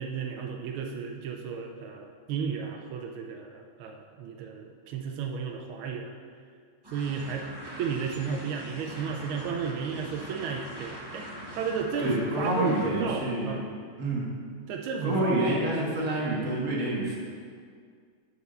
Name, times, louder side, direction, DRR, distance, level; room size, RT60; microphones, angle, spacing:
voice 1, 0.0-6.1 6.9-7.5 7.8-13.6 14.7-15.5, right 6 dB, 90° right, 3 dB, 1.5 m, -33 dB
sound 1, 6.8-13.2, equal, 25° right, 0.5 m, -42 dB
voice 2, 12.0-13.6 14.0-14.3 15.0-17.2, right 1 dB, 45° right, -4 dB, 2.0 m, -28 dB
6.5 x 4.9 x 6.6 m, 2.1 s
omnidirectional pair, 2.2 m